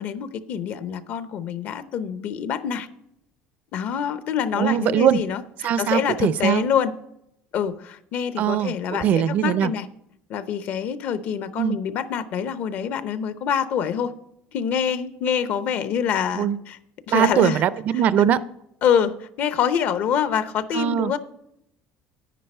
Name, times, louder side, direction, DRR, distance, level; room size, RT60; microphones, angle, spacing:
voice 1, 0.0-2.9 3.7-5.4 5.8-6.9 7.5-9.9 10.3-14.1 14.5-16.8 17.1-17.6 18.8-21.2, left 8 dB, 50° left, 12 dB, 0.7 m, -25 dB
voice 2, 4.5-5.2 5.6-6.7 8.4-9.7 11.6-11.8 16.4-16.6 17.1-18.4 20.7-21.1, right 9 dB, 45° right, 15 dB, 0.5 m, -21 dB
10.0 x 10.0 x 4.4 m, 0.77 s
cardioid pair, 155°, 4 cm